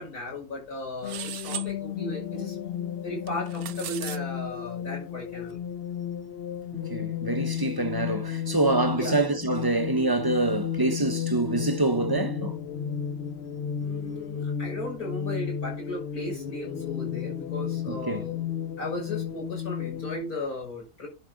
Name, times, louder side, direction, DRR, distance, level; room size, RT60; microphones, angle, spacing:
voice 1, 0.0-2.6 3.0-5.6 8.9-9.2 13.8-18.4 18.8-21.1, left 1 dB, 80° left, 6.6 m, -36 dB
sound 1, 1.0-20.2, left 9 dB, 55° left, 0.8 m, -33 dB
sound 2, 1.0-1.7 3.3-4.2, right 12 dB, 80° right, 1.2 m, -37 dB
voice 2, 6.9-12.6 17.9-18.2, right 2 dB, 20° right, 0.6 m, -26 dB
10.5 x 5.0 x 5.1 m
omnidirectional pair, 1.6 m